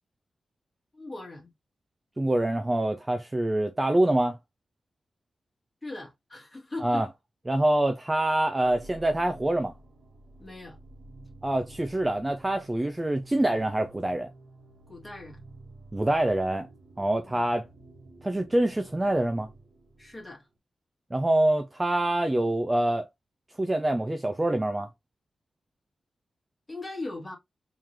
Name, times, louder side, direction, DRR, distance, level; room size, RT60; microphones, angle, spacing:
voice 1, 0.9-1.5 5.8-7.1 10.4-10.8 14.9-15.4 17.2-17.5 20.0-20.4 26.7-27.4, left 2 dB, 15° left, 1.7 m, -39 dB
voice 2, 2.2-4.4 6.8-7.1 7.5-9.7 11.4-14.3 15.9-16.7 17.0-17.7 18.2-19.5 21.1-23.1 23.6-24.9, right 1 dB, 15° right, 0.4 m, -25 dB
sound 1, 8.6-20.5, right 2 dB, 50° right, 1.3 m, -51 dB
3.7 x 3.1 x 2.9 m
wide cardioid pair, 150°, 0 cm